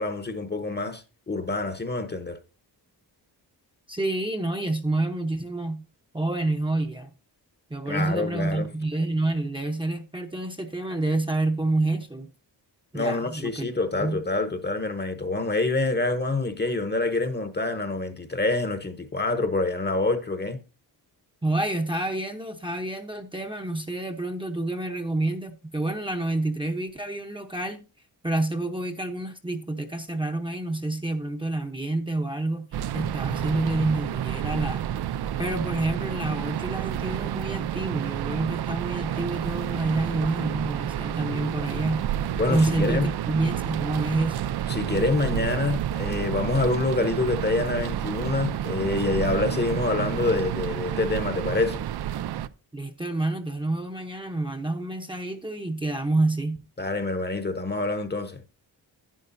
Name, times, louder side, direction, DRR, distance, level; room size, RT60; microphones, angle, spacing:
voice 1, 0.0-2.4 7.9-8.7 12.9-20.6 42.4-43.1 44.7-51.8 56.8-58.4, left 3 dB, 25° left, 0.9 m, -26 dB
voice 2, 3.9-5.8 6.1-7.1 7.7-12.3 12.9-13.7 14.0-14.2 21.4-27.8 28.2-32.7 32.9-34.9 35.4-42.1 42.5-44.5 52.7-56.6, right 2 dB, 10° right, 0.8 m, -28 dB
sound 1, 32.7-52.5, right 11 dB, 65° right, 0.5 m, -30 dB
11.0 x 9.3 x 2.6 m
cardioid pair, 100°, 42 cm